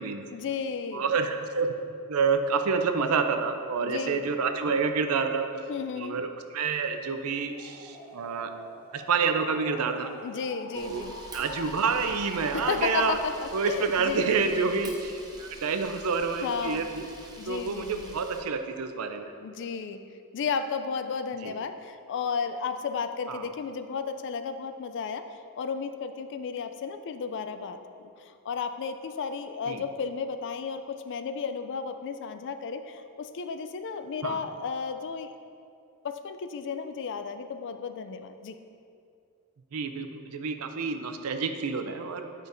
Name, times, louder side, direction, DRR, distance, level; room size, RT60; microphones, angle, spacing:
voice 1, 0.3-1.0 3.8-4.3 5.7-6.2 10.2-11.2 12.5-14.9 16.4-16.9 17.4-18.2 19.4-20.0 20.3-25.2 25.6-35.3 36.0-38.6, left 5 dB, 55° left, 9 dB, 0.3 m, -33 dB
voice 2, 0.9-1.8 2.1-5.5 6.0-8.5 8.9-10.1 10.7-11.0 11.3-13.2 13.5-17.1 17.5-19.3 21.4-21.5 23.3-23.5 29.7-29.8 34.2-34.4 39.7-42.3, right 5 dB, 75° right, 7 dB, 0.5 m, -28 dB
sound 1, 7.5-13.3, left 2 dB, 25° left, 1.1 m, -44 dB
Camera, 10.7-18.4, right 2 dB, 20° right, 0.7 m, -47 dB
9.3 x 5.1 x 2.6 m, 2.4 s
head